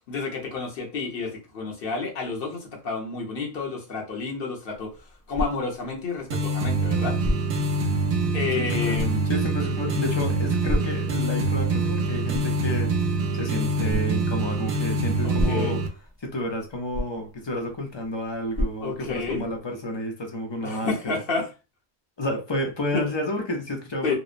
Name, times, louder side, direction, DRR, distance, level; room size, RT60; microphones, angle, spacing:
voice 1, 0.1-7.2 8.3-9.3 15.2-15.8 18.8-19.5 20.6-21.5 22.9-23.0 24.0-24.2, left 4 dB, 60° left, 1 dB, 1.0 m, -30 dB
sound 1, 4.7-19.6, left 1 dB, 5° left, 0.9 m, -35 dB
sound 2, 6.3-15.9, right 2 dB, 70° right, 0.8 m, -25 dB
voice 2, 8.6-12.9 13.3-15.8 16.2-20.9 22.2-24.1, left 1 dB, 35° left, 2 dB, 0.4 m, -30 dB
2.8 x 2.0 x 2.4 m, 0.30 s
omnidirectional pair, 1.1 m